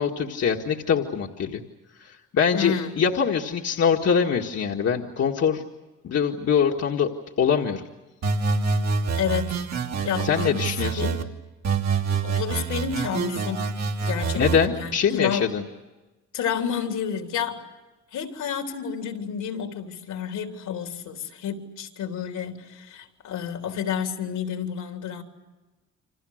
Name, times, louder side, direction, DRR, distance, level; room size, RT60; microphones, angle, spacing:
voice 1, 0.0-1.6 2.0-5.6 6.0-7.1 7.4-7.8 10.2-11.2 14.3-15.6, left 7 dB, 55° left, 1.9 m, -23 dB
voice 2, 2.5-3.0 9.2-9.7 10.0-11.3 12.2-13.7 14.0-15.5 16.3-17.7 18.1-25.2, left 8 dB, 80° left, 3.4 m, -30 dB
sound 1, 8.2-11.2 11.6-14.7, right 5 dB, 65° right, 2.9 m, -26 dB
29.0 x 25.5 x 6.6 m
cardioid pair, 90°, 30 cm